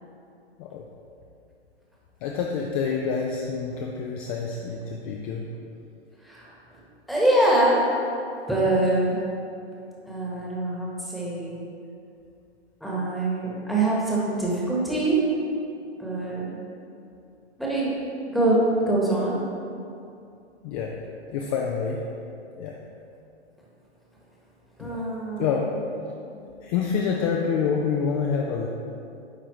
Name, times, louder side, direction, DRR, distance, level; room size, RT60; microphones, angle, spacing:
voice 1, 2.2-5.4 20.6-20.9 21.3-22.0 22.6-22.7 24.8-25.0 25.4-25.7 26.6-28.7, left 6 dB, 35° left, 0 dB, 0.5 m, -27 dB
voice 2, 7.1-7.8 8.5-9.2 10.1-11.6 12.8-15.2 16.0-16.5 17.6-17.9 18.3-18.6 18.9-19.4 24.8-25.8, right 2 dB, ahead, -6 dB, 1.2 m, -24 dB
9.5 x 3.7 x 3.1 m, 2.6 s
hypercardioid pair, 110°, 34 cm